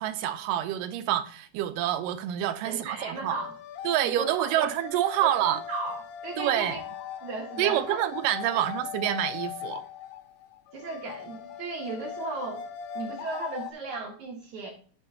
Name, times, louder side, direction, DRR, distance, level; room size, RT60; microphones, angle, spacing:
voice 1, 0.0-3.4 3.8-5.6 6.4-6.8 7.6-9.8, right 12 dB, 80° right, 2.0 m, -27 dB
voice 2, 2.6-3.5 4.0-4.7 5.2-6.8 7.2-8.0 8.5-8.7 10.7-12.6 12.9-14.7, right 3 dB, 60° right, 2.4 m, -36 dB
sound 1, 2.7-13.7, left 8 dB, 75° left, 2.4 m, -40 dB
9.9 x 6.4 x 2.8 m
omnidirectional pair, 4.3 m